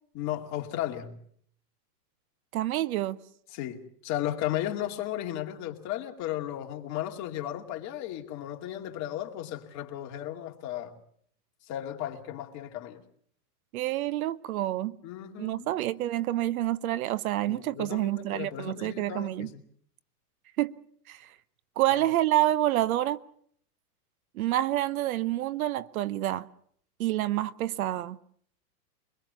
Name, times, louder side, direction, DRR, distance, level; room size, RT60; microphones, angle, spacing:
voice 1, 0.1-1.2 3.5-11.0 11.6-13.0 15.0-15.7 17.5-19.6, left 12 dB, 35° left, 2.4 m, -35 dB
voice 2, 2.5-3.2 13.7-15.0 15.4-19.5 20.6-20.8 21.1-21.3 21.8-23.2 24.3-26.5 27.0-28.2, right 14 dB, 60° right, 0.9 m, -28 dB
24.0 x 21.0 x 6.9 m
hypercardioid pair, 140°, 48 cm